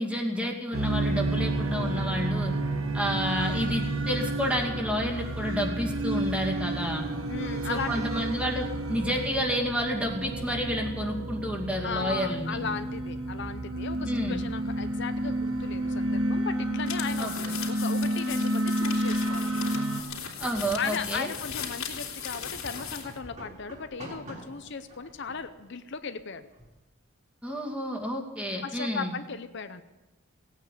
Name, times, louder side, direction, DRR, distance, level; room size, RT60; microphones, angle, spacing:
voice 1, 0.0-2.5 2.9-7.0 7.6-12.6 14.0-14.5 17.2-17.5 20.4-21.3 27.4-29.1, equal, 5° right, 0 dB, 2.3 m, -30 dB
sound 1, 0.7-20.0, right 1 dB, 90° right, 1.4 m, -30 dB
voice 2, 7.3-8.0 11.8-17.3 17.7-19.7 20.8-26.5 28.6-29.8, left 5 dB, 60° left, 9 dB, 0.7 m, -36 dB
sound 2, 16.6-26.8, right 1 dB, 35° right, 5.4 m, -50 dB
sound 3, 16.8-23.2, left 7 dB, 85° left, 3.1 m, -38 dB
17.5 x 9.2 x 8.2 m, 1.1 s
head